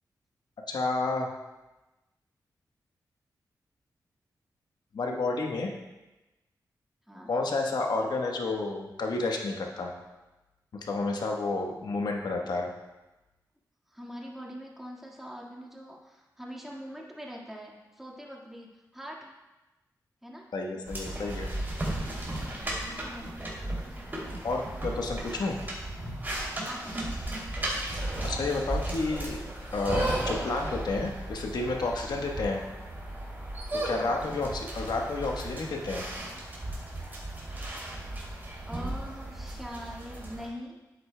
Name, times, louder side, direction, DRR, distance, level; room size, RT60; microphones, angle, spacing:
voice 1, 0.7-1.3 4.9-5.7 7.3-9.9 10.8-12.7 20.5-21.5 24.4-25.6 28.2-29.4 29.7-32.6 33.7-36.1, left 3 dB, 70° left, 1 dB, 1.1 m, -30 dB
voice 2, 13.9-19.3 20.2-20.5 22.1-23.8 26.7-27.2 33.9-34.1 38.7-40.8, equal, 5° right, -2 dB, 1.7 m, -43 dB
sound 1, 20.9-40.5, right 1 dB, 25° right, 2.7 m, -35 dB
10.5 x 8.0 x 2.2 m, 1.1 s
cardioid pair, 70°, 7 cm